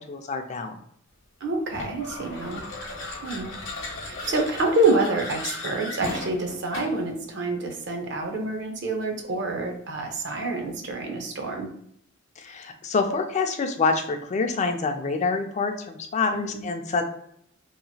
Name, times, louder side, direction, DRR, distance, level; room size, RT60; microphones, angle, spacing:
voice 1, 0.1-0.8 12.4-17.0, left 4 dB, 35° left, 6 dB, 0.3 m, -26 dB
voice 2, 1.4-2.7 3.2-3.5 4.0-11.7 16.3-16.6, right 2 dB, 60° right, 3 dB, 0.6 m, -27 dB
sound 1, 1.7-7.1, left 2 dB, 70° left, 0.8 m, -36 dB
2.9 x 2.4 x 2.7 m, 0.70 s
head